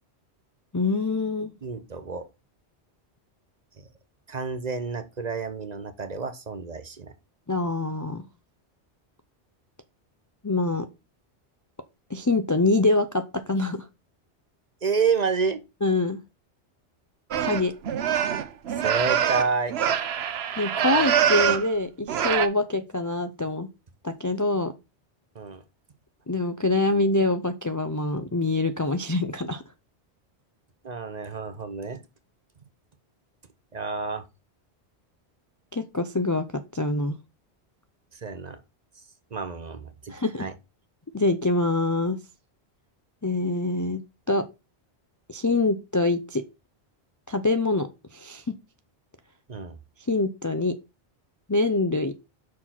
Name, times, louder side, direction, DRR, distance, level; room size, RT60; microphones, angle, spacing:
voice 1, 0.7-1.5 7.5-8.2 10.4-10.9 12.1-13.8 15.8-16.2 17.4-17.7 20.6-23.7 24.0-24.7 26.3-29.6 35.7-37.2 40.1-40.5 41.1-42.2 43.2-44.0 44.3-44.4 45.3-46.4 47.3-48.6 50.1-50.7 51.5-52.1, left 2 dB, 25° left, 0.4 m, -25 dB
voice 2, 1.6-2.3 3.8-3.9 4.3-7.1 14.8-15.6 18.8-19.8 25.3-25.6 30.8-32.0 33.7-34.3 38.1-38.6 39.3-40.5 49.5-49.8, right 5 dB, 40° right, 0.8 m, -29 dB
sound 1, 17.3-21.7 22.1-22.5, right 9 dB, 70° right, 1.0 m, -24 dB
6.1 x 4.7 x 5.7 m
omnidirectional pair, 1.1 m